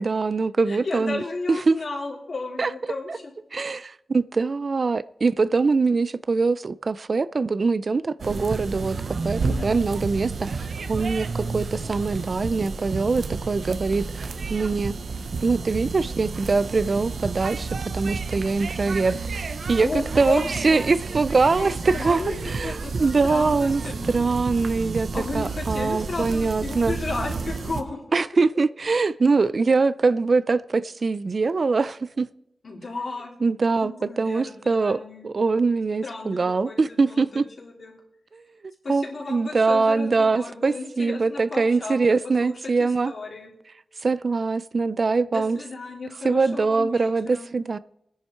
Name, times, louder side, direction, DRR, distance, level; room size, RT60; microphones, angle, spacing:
voice 1, 0.0-1.2 1.5-1.8 2.6-2.7 3.1-3.2 3.5-9.0 9.2-15.0 15.4-23.8 24.1-25.1 25.3-26.9 28.1-32.3 33.4-37.5 38.3-38.4 38.9-43.1 44.0-45.6 46.2-47.8, right 4 dB, 50° right, 0.4 m, -23 dB
voice 2, 0.7-3.2 9.4-9.8 19.8-21.0 21.6-22.3 22.6-24.1 25.1-28.4 32.6-33.3 33.8-35.3 36.0-37.9 38.8-42.0 42.4-43.5 45.3-47.5, left 3 dB, 65° left, 3.4 m, -34 dB
sound 1, 8.2-27.8, right 4 dB, 75° right, 0.7 m, -31 dB
20.0 x 10.0 x 4.5 m
wide cardioid pair, 100°, 0 cm